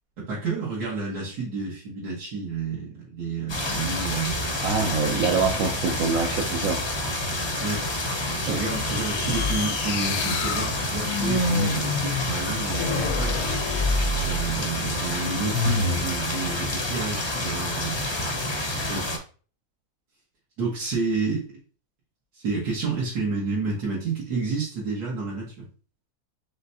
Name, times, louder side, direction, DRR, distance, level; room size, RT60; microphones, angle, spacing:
voice 1, 0.3-4.4 4.8-5.2 7.6-7.8 8.4-13.4 14.2-18.0 18.9-19.1 20.6-21.5 22.4-25.7, right 4 dB, 85° right, -6 dB, 1.8 m, -30 dB
sound 1, 3.5-19.2, left 1 dB, 35° left, 0.4 m, -29 dB
voice 2, 4.6-6.8 8.5-8.6, right 5 dB, 70° right, 2 dB, 1.0 m, -25 dB
sound 2, 8.6-14.6 15.5-16.1, left 3 dB, 65° left, 0.9 m, -28 dB
5.0 x 3.2 x 2.7 m, 0.39 s
omnidirectional pair, 1.6 m